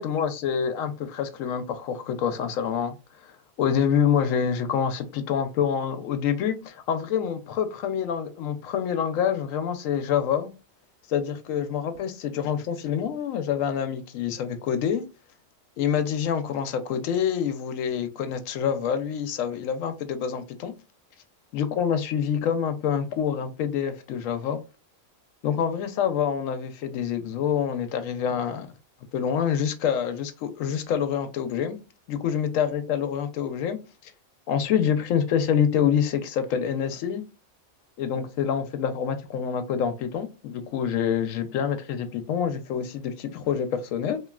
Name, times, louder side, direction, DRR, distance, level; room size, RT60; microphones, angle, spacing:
voice 1, 0.0-2.9 3.6-10.5 11.1-15.0 15.8-20.7 21.5-24.6 25.4-28.7 29.1-31.8 32.1-34.1 34.5-37.3 38.0-44.2, left 8 dB, 75° left, 0.9 m, -26 dB
3.0 x 2.7 x 2.3 m
omnidirectional pair, 1.4 m